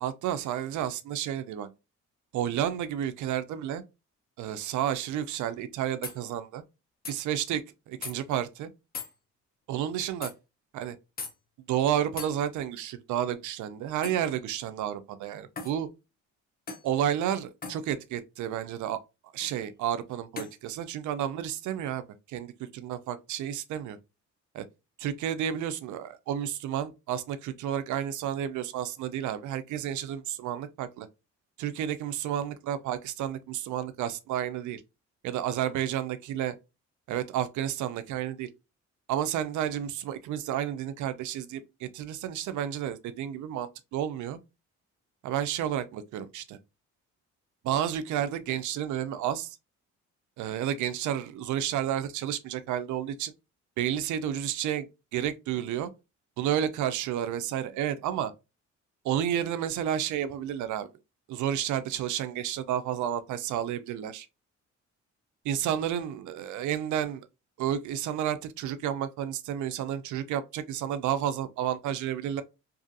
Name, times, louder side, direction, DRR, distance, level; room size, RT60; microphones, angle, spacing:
voice 1, 0.0-1.7 2.3-3.8 4.4-6.6 7.1-7.6 8.0-8.7 9.7-10.3 10.7-11.0 11.7-15.9 16.8-19.0 19.3-24.0 24.5-24.6 25.0-31.1 31.6-34.8 35.2-36.5 37.1-38.5 39.1-44.4 45.2-46.6 47.6-49.6 50.4-53.3 53.8-55.9 56.4-58.3 59.0-60.9 61.3-64.3 65.4-67.3 67.6-72.4, right 10 dB, 75° right, 0.5 m, -31 dB
sound 1, 6.0-6.2 7.0-7.2 8.0-8.1 8.9-9.1 10.2-10.3 11.2-11.3 12.2-12.3 14.0-14.3 15.6-15.8 16.7-16.9 17.6-17.8 19.4-19.6 20.4-20.6, left 4 dB, 30° left, 0.7 m, -38 dB
2.6 x 2.4 x 2.5 m
cardioid pair, 90°, 30 cm